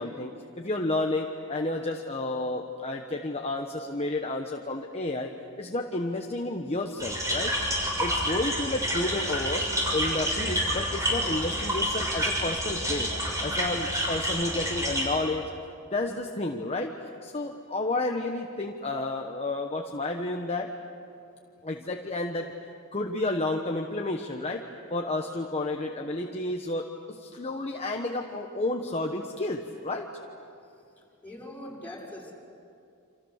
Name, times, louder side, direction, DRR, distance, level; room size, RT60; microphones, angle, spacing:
voice 1, 0.0-5.3 5.6-7.5 8.0-13.1 13.4-15.5 15.9-16.9 17.2-20.7 21.6-22.5 22.9-24.6 24.9-30.1, left 2 dB, 30° left, 2 dB, 1.2 m, -31 dB
sound 1, 7.0-15.0, equal, 15° right, 6.6 m, -29 dB
voice 2, 31.2-32.3, left 1 dB, 10° left, -5 dB, 6.1 m, -41 dB
29.0 x 27.0 x 6.6 m, 2.5 s
head